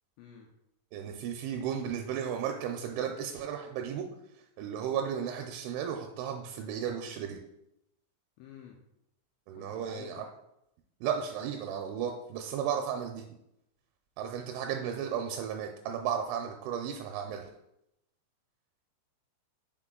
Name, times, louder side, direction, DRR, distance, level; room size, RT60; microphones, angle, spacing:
voice 1, 0.2-0.5 8.4-8.8 9.6-10.3, left 7 dB, 85° left, 1 dB, 2.5 m, -50 dB
voice 2, 0.9-4.1 4.6-7.4 9.5-10.2 11.0-13.2 14.2-17.5, right 8 dB, 85° right, 4 dB, 2.8 m, -34 dB
6.5 x 4.2 x 3.7 m, 0.82 s
omnidirectional pair, 5.6 m